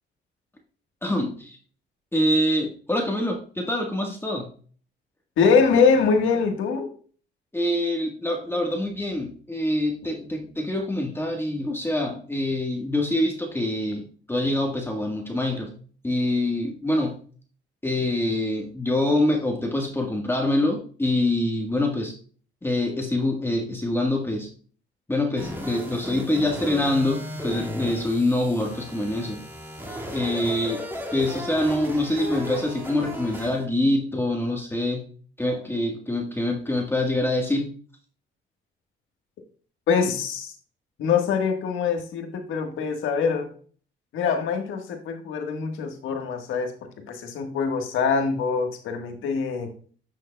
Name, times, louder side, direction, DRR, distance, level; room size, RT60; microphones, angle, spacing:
voice 1, 1.0-1.6 2.1-4.5 7.5-15.8 16.0-17.3 17.8-22.1 22.6-24.5 25.1-29.4 30.1-30.8 31.1-35.1 35.4-37.7, left 1 dB, 10° left, 1 dB, 1.4 m, -25 dB
voice 2, 5.4-6.9 39.9-40.5 41.0-43.5 44.1-46.7 47.1-49.7, left 5 dB, 85° left, 5 dB, 1.4 m, -23 dB
sound 1, 25.4-33.6, equal, 10° right, 2.0 m, -35 dB
10.5 x 6.3 x 2.2 m, 0.44 s
cardioid pair, 90°, 20 cm